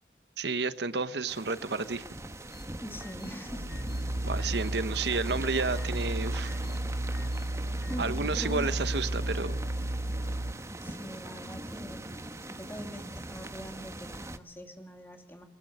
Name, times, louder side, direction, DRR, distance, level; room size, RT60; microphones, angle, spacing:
voice 1, 0.4-2.0 4.2-6.5 8.0-9.6, right 4 dB, 70° right, 13 dB, 1.0 m, -31 dB
sound 1, 1.3-14.4, right 2 dB, 15° right, 1.1 m, -42 dB
sound 2, 2.5-2.6 3.0-3.3 3.7-4.0 4.4-4.7 5.1-5.4 5.8-6.1 6.4-6.8 7.1-7.4 7.8-7.9, left 5 dB, 60° left, 6.7 m, -53 dB
voice 2, 2.8-3.7 7.1-7.3 7.9-8.8 10.8-12.2 12.5-15.4, equal, 10° left, 5 dB, 2.6 m, -42 dB
sound 3, 3.5-10.5, right 1 dB, 45° right, 1.7 m, -33 dB
22.0 x 20.5 x 8.0 m, 0.72 s
head